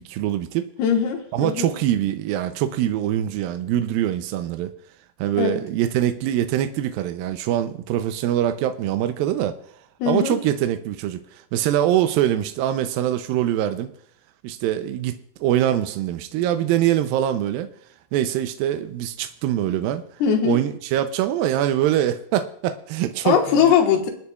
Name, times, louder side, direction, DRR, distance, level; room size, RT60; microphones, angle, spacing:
voice 1, 0.0-0.7 1.3-4.7 5.2-9.6 10.1-13.9 14.4-17.7 18.1-20.0 20.4-23.6, right 11 dB, 80° right, 8 dB, 2.1 m, -23 dB
voice 2, 0.8-1.7 5.4-5.6 10.0-10.4 20.2-20.6 23.2-24.1, left 8 dB, 80° left, 3 dB, 3.2 m, -20 dB
25.5 x 9.8 x 2.4 m, 0.66 s
omnidirectional pair, 4.7 m